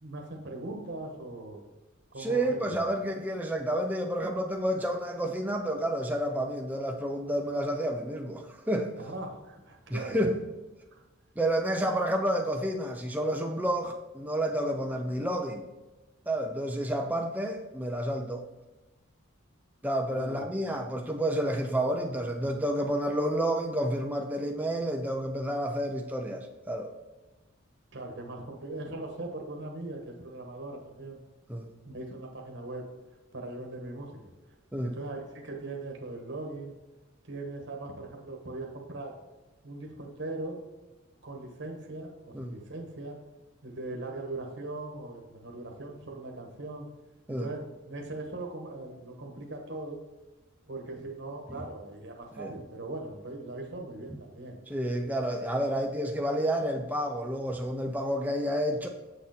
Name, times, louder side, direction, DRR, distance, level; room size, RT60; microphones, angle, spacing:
voice 1, 0.0-1.6 2.1-2.8 9.0-10.2 10.9-11.0 20.1-20.5 27.9-31.2 31.8-32.9 33.3-34.2 34.8-36.7 37.3-39.1 39.6-40.6 41.2-43.2 43.6-46.9 47.3-50.0 50.7-54.6, right 2 dB, 55° right, 1 dB, 1.3 m, -40 dB
voice 2, 2.2-8.9 9.9-10.4 11.4-15.7 16.3-18.4 19.8-26.9 31.5-31.7 34.7-34.9 42.3-42.5 47.3-47.5 52.4-52.5 54.7-58.9, right 1 dB, 10° right, 2 dB, 0.5 m, -30 dB
7.3 x 6.4 x 4.2 m, 1.1 s
head